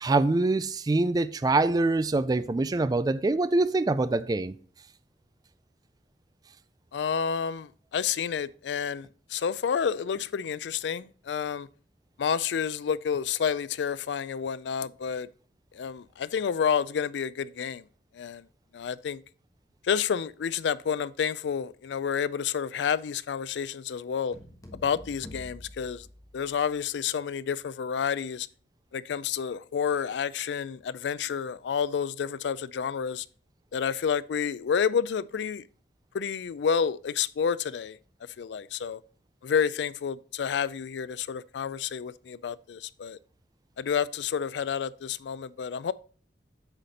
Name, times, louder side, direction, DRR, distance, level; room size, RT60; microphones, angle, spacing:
voice 1, 0.0-4.5, right 2 dB, 20° right, 0.3 m, -24 dB
voice 2, 6.9-11.7 12.2-15.3 15.7-17.8 18.2-18.4 18.7-19.2 19.8-24.4 24.7-26.1 26.3-28.5 28.9-33.3 33.7-35.6 36.1-38.0 38.4-39.0 39.4-43.2 43.8-45.9, left 7 dB, 80° left, 0.4 m, -29 dB
sound 1, 24.3-26.9, left 1 dB, 20° left, 1.3 m, -47 dB
8.0 x 4.2 x 4.1 m
head